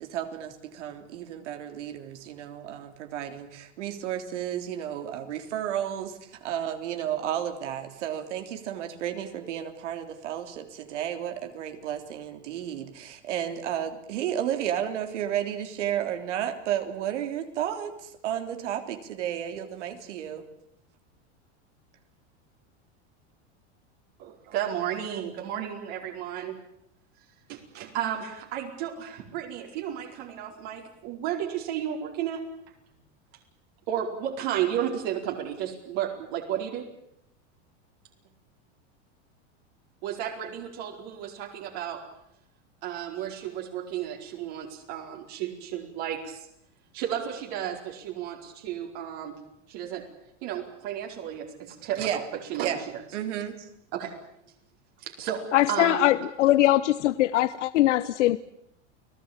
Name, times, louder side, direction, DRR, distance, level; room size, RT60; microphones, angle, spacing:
voice 1, 0.0-20.4 52.0-52.3 52.6-52.8 53.1-53.7, right 10 dB, 85° right, 6 dB, 3.5 m, -32 dB
voice 2, 24.2-26.6 27.5-32.4 33.9-36.8 40.0-42.0 42.8-46.5 46.9-49.4 49.7-50.0 50.4-52.2 52.5-52.7 53.9-54.1 55.0-55.4 55.7-56.1, right 10 dB, 60° right, 0 dB, 4.7 m, -33 dB
voice 3, 55.5-58.4, left 14 dB, 90° left, 15 dB, 1.0 m, -22 dB
30.0 x 18.0 x 9.0 m, 0.78 s
supercardioid pair, 130°, 35 cm